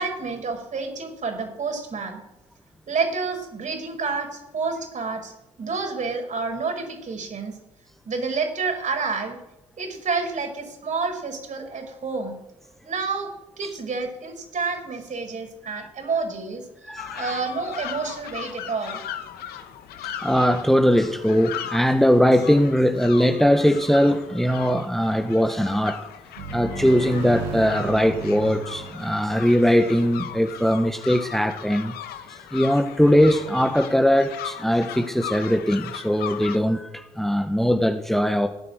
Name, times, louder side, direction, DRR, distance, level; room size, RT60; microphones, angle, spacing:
voice 1, 0.0-2.2 2.9-5.3 5.6-7.6 8.1-9.4 9.8-12.3 12.8-13.3 13.6-16.6 17.1-19.0, right 4 dB, 45° right, 4 dB, 5.2 m, -29 dB
voice 2, 16.8-17.3 20.2-26.0 26.5-31.9 32.3-38.5, equal, ahead, 6 dB, 1.5 m, -20 dB
sound 1, 17.0-36.6, left 10 dB, 65° left, 1.5 m, -38 dB
sound 2, 26.4-31.0, right 5 dB, 85° right, 3.0 m, -36 dB
17.0 x 9.4 x 8.0 m, 0.90 s
hypercardioid pair, 50°, 17 cm